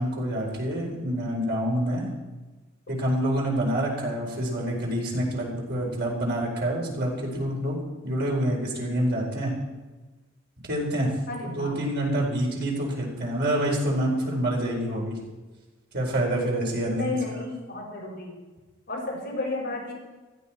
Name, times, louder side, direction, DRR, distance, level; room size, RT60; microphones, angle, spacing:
voice 1, 0.0-2.1 2.9-7.8 8.0-9.5 10.7-11.1 11.4-15.2 15.9-17.1, right 1 dB, 55° right, -1 dB, 4.5 m, -27 dB
voice 2, 11.3-11.8 16.9-18.4 18.9-19.9, left 3 dB, 50° left, -3 dB, 5.7 m, -32 dB
16.0 x 14.0 x 4.4 m, 1.2 s
head